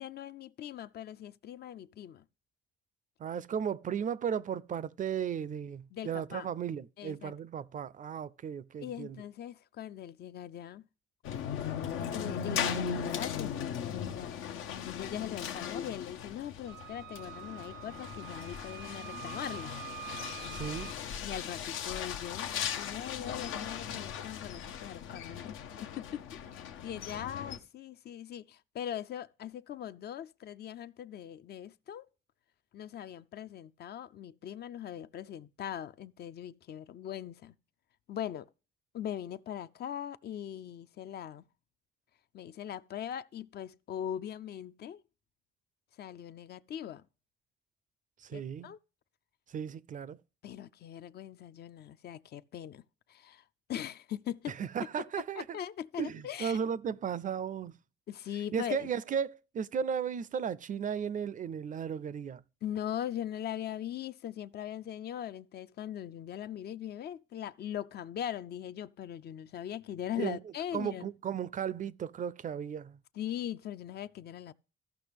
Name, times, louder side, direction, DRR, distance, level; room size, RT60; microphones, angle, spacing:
voice 1, 0.0-2.2 5.9-6.5 7.0-7.3 8.8-10.8 12.1-19.8 21.2-22.5 22.8-32.1 32.7-37.5 38.1-38.5 38.9-41.5 42.3-45.0 46.0-47.0 48.3-48.8 50.4-52.8 53.1-53.4 53.7-54.6 55.4-56.6 58.1-58.9 62.6-71.1 73.1-74.5, left 10 dB, 55° left, 0.4 m, -40 dB
voice 2, 3.2-9.2 20.5-20.9 48.2-48.7 49.5-50.2 54.5-55.6 56.0-57.7 58.5-62.4 70.2-70.4 70.7-73.0, right 7 dB, 40° right, 0.4 m, -35 dB
sound 1, 11.2-27.6, left 8 dB, 90° left, 0.7 m, -38 dB
Wind instrument woodwind instrument, 16.7-21.0, right 14 dB, 90° right, 0.6 m, -46 dB
14.5 x 5.8 x 3.4 m
cardioid pair, 90°, 20 cm